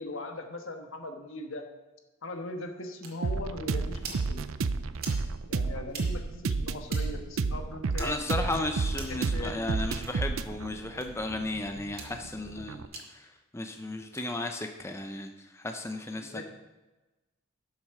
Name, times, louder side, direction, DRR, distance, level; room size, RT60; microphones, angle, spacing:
voice 1, 0.0-1.6 2.2-4.4 5.4-8.3 9.3-9.7 16.2-16.4, left 2 dB, 65° left, 5 dB, 1.3 m, -39 dB
sound 1, 3.0-3.1 3.9-4.2 4.9-5.2 5.9-6.1 6.9-7.0 7.9-8.1 8.9-9.2 9.9-10.1 10.9-11.1 11.9-12.1 12.9-13.0 14.0-14.3, right 5 dB, 45° right, 2.3 m, -42 dB
sound 2, 3.2-12.9, right 4 dB, 75° right, 0.5 m, -31 dB
voice 2, 8.0-16.4, left 2 dB, 15° left, 5 dB, 0.5 m, -35 dB
12.0 x 7.4 x 4.8 m, 1.1 s
head